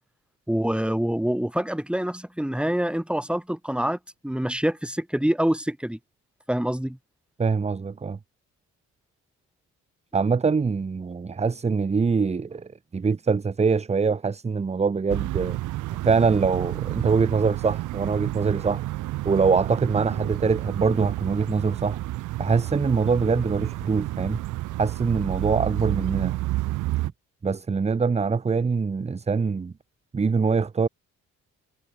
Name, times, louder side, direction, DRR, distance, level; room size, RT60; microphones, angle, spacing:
voice 1, 0.5-6.0 6.5-7.0, equal, 5° right, 4.3 m, -26 dB
voice 2, 7.4-8.2 10.1-15.6 16.0-18.9 19.2-22.0 22.4-24.4 24.8-26.4 27.4-29.7 30.1-30.9, right 5 dB, 20° right, 0.8 m, -24 dB
sound 1, 15.1-27.1, right 17 dB, 80° right, 0.6 m, -30 dB
cardioid pair, 90°, 30 cm